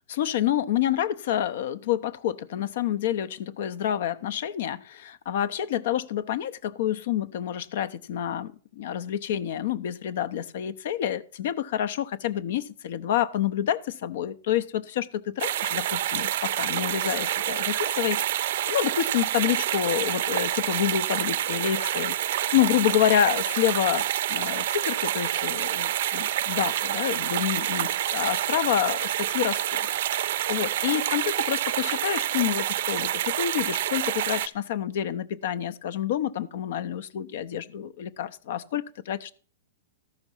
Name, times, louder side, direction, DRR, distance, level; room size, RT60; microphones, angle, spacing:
voice 1, 0.1-22.1 22.5-39.3, left 10 dB, 60° left, 16 dB, 0.7 m, -28 dB
sound 1, 15.4-34.5, right 12 dB, 60° right, 0.5 m, -28 dB
13.5 x 5.9 x 5.5 m, 0.43 s
supercardioid pair, 160°, 0 cm